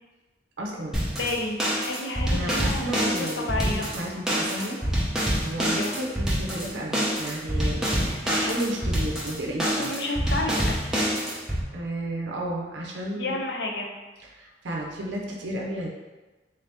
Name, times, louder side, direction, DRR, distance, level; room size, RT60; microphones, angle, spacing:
voice 1, 0.6-1.2 2.3-4.8 5.4-9.9 11.7-13.4 14.2-15.9, right 1 dB, 70° right, -1 dB, 0.5 m, -33 dB
sound 1, 0.9-11.6, equal, 5° right, 0.6 m, -26 dB
voice 2, 1.2-3.9 5.7-5.9 9.8-10.9 13.1-13.9, left 2 dB, 65° left, 1 dB, 0.6 m, -31 dB
3.8 x 2.7 x 3.4 m, 1.2 s
head